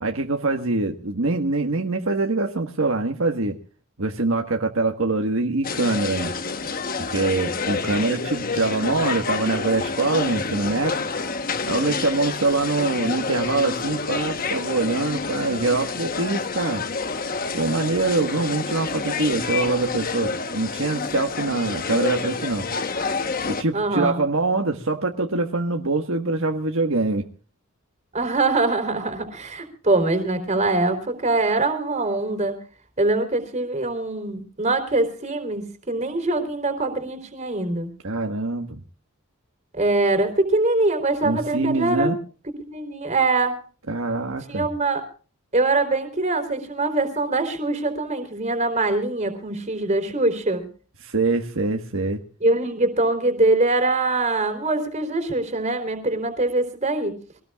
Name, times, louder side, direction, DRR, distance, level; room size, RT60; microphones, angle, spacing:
voice 1, 0.0-3.6 4.0-6.3 7.1-11.0 11.7-16.8 17.5-22.7 23.5-27.2 38.0-38.8 41.2-42.2 43.9-44.6 51.0-52.2, right 3 dB, 65° right, 3 dB, 1.5 m, -24 dB
sound 1, 5.6-23.6, left 4 dB, 40° left, 1.1 m, -28 dB
voice 2, 23.7-24.2 28.1-32.6 33.0-37.9 39.7-42.1 42.7-43.6 44.5-45.0 45.5-50.6 52.4-57.1, right 2 dB, 30° right, 7 dB, 3.6 m, -23 dB
23.5 x 19.0 x 2.4 m, 0.40 s
head